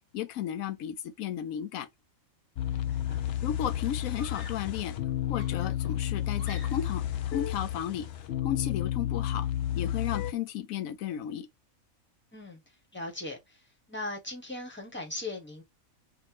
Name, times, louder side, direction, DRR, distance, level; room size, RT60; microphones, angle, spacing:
voice 1, 0.1-1.9 3.4-5.0 5.3-8.1 8.4-9.5 9.8-11.5, left 10 dB, 85° left, 1.0 m, -34 dB
sound 1, 2.6-10.3, left 12 dB, 60° left, 0.7 m, -31 dB
voice 2, 2.7-3.2 12.3-12.6 12.9-13.6 13.9-15.6, left 2 dB, 10° left, 1.3 m, -39 dB
Screaming, 4.1-4.8 5.3-7.1, left 3 dB, 40° left, 1.0 m, -49 dB
5.9 x 2.6 x 3.0 m
omnidirectional pair, 1.4 m